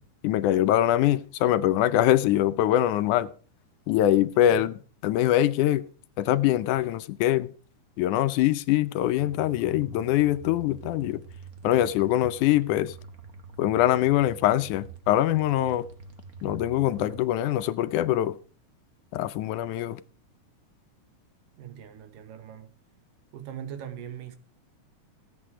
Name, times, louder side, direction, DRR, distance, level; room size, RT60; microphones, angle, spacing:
voice 1, 0.2-3.3 3.9-4.7 5.0-5.8 6.2-7.5 8.0-11.2 11.6-13.0 13.6-15.9 16.4-18.4 19.1-20.0, left 13 dB, 80° left, 2.1 m, -23 dB
sound 1, 9.2-17.2, right 5 dB, 50° right, 1.1 m, -45 dB
voice 2, 21.6-22.7 23.3-24.4, right 9 dB, 85° right, 3.1 m, -41 dB
16.5 x 8.6 x 4.9 m
omnidirectional pair, 3.7 m